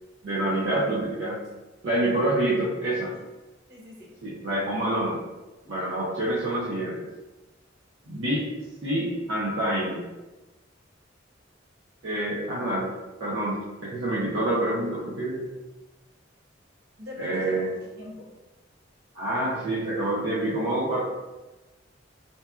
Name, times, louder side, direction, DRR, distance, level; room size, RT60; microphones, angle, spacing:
voice 1, 0.2-1.4 1.8-3.1 4.2-5.2 5.7-7.1 8.1-8.5 8.8-10.0 12.0-12.9 13.2-15.5 17.2-17.7 19.1-21.0, right 1 dB, 75° right, -8 dB, 0.6 m, -27 dB
voice 2, 3.7-4.1 5.6-5.9 17.0-18.3, left 2 dB, 60° right, -4 dB, 1.0 m, -43 dB
4.1 x 2.2 x 2.3 m, 1.1 s
head